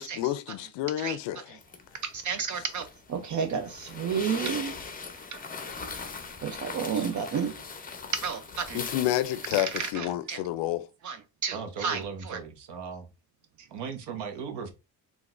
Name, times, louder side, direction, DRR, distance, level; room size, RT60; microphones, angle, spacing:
voice 1, 0.0-1.6 8.7-10.9, left 13 dB, 60° left, 0.5 m, -30 dB
sound 1, 1.6-9.9, left 4 dB, 20° left, 0.6 m, -40 dB
voice 2, 2.0-4.7 5.3-5.4 6.4-7.6 8.1-8.8 9.6-10.4 11.0-11.2 11.4-12.4, right 6 dB, 40° right, 0.5 m, -31 dB
voice 3, 11.5-13.1 13.6-14.7, right 6 dB, 55° right, 1.0 m, -38 dB
3.8 x 2.4 x 2.4 m
supercardioid pair, 70°, 48 cm